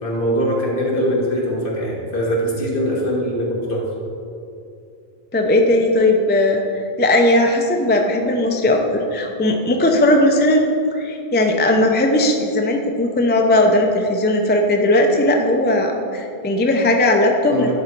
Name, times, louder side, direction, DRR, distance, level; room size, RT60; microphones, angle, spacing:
voice 1, 0.0-3.8 17.5-17.7, equal, 55° left, -3 dB, 1.6 m, -22 dB
voice 2, 5.3-10.7 10.9-17.7, left 1 dB, 15° left, 2 dB, 0.4 m, -17 dB
10.5 x 3.9 x 4.5 m, 2.5 s
omnidirectional pair, 1.1 m